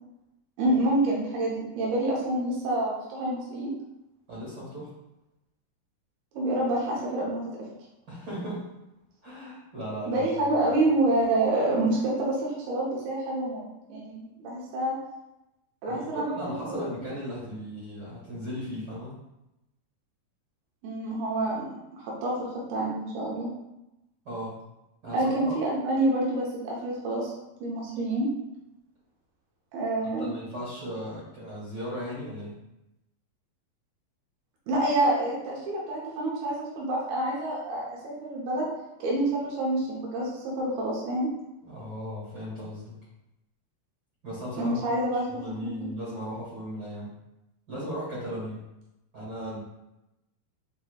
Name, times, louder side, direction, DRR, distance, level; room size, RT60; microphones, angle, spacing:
voice 1, 0.6-3.7 6.3-7.5 10.1-13.6 13.9-15.0 15.8-17.0 20.8-21.7 22.0-23.5 25.1-27.3 27.6-28.3 29.7-30.3 34.7-38.7 39.0-41.3 44.6-45.2 45.6-45.9, right 1 dB, 90° right, -4 dB, 2.8 m, -27 dB
voice 2, 4.3-4.9 8.1-8.7 9.2-10.6 15.9-19.2 24.2-24.6 25.0-25.6 30.0-32.5 41.6-42.9 44.2-47.1 47.7-48.6 49.1-49.6, equal, 45° right, -7 dB, 1.3 m, -37 dB
6.9 x 2.8 x 2.3 m, 0.91 s
omnidirectional pair, 4.2 m